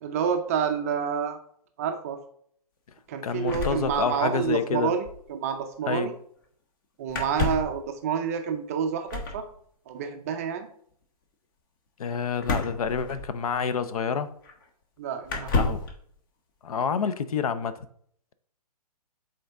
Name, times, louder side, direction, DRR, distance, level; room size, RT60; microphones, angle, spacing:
voice 1, 0.0-1.4 1.8-2.2 3.1-6.1 7.0-9.5 9.9-10.7 15.0-15.6, right 7 dB, 25° right, 6 dB, 0.4 m, -28 dB
voice 2, 3.2-4.9 5.9-6.1 12.0-14.3 15.6-15.9 16.6-17.9, left 6 dB, 65° left, 12 dB, 0.6 m, -28 dB
sound 1, 3.5-4.5 4.8-4.9 5.0-5.3 7.1-7.8 9.1-9.4 12.4-13.6 14.4-14.5 15.2-15.9, left 3 dB, 30° left, 0.9 m, -30 dB
7.7 x 3.8 x 3.5 m, 0.63 s
hypercardioid pair, 155°, 20 cm